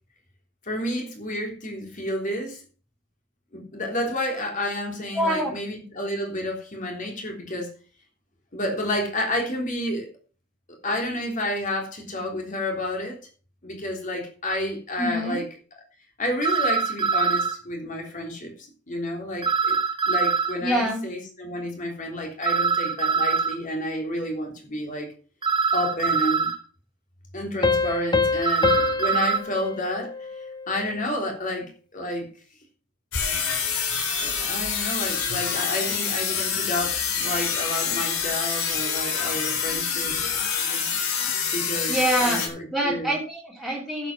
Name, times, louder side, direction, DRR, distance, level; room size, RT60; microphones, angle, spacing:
voice 1, 0.6-2.6 3.5-7.7 8.5-10.1 10.8-13.2 13.6-15.4 16.2-19.8 20.0-25.1 25.7-26.5 27.3-32.2 34.2-40.2 41.2-43.1, left 1 dB, 35° left, 1 dB, 3.4 m, -30 dB
voice 2, 5.1-5.6 15.0-15.4 20.6-21.0 41.9-42.4 42.7-44.1, right 1 dB, ahead, -3 dB, 3.2 m, -25 dB
sound 1, 14.5-14.6 16.4-17.6 19.4-20.6 22.4-23.6 25.4-26.6 28.4-29.4, right 5 dB, 20° right, 1.1 m, -23 dB
Piano, 27.6-30.9, left 4 dB, 20° left, 0.8 m, -26 dB
sound 2, 33.1-42.5, left 6 dB, 70° left, 3.9 m, -26 dB
11.0 x 8.2 x 6.0 m, 0.39 s
head